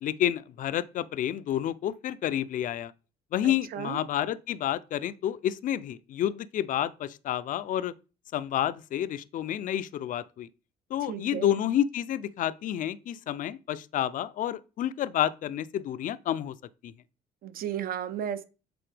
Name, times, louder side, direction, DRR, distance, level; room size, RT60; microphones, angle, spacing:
voice 1, 0.0-2.9 3.3-7.9 8.3-10.5 10.9-16.6 16.8-16.9, left 11 dB, 50° left, 0.4 m, -29 dB
voice 2, 3.4-4.0 11.1-11.6 17.4-18.4, right 9 dB, 60° right, 0.7 m, -34 dB
7.7 x 4.1 x 3.3 m
cardioid pair, 110°, 17 cm